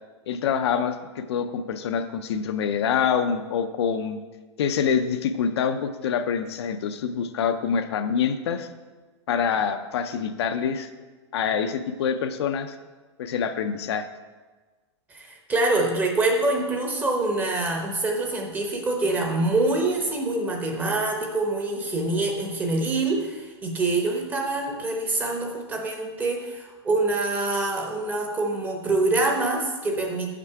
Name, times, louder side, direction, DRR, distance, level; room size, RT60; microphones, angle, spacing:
voice 1, 0.3-4.2 4.6-8.7 9.3-10.9 11.3-12.7 13.2-14.1, left 7 dB, 60° left, 8 dB, 0.6 m, -26 dB
voice 2, 15.1-30.3, right 2 dB, 10° right, 1 dB, 0.8 m, -25 dB
7.5 x 5.9 x 4.6 m, 1.3 s
supercardioid pair, 160°, 15 cm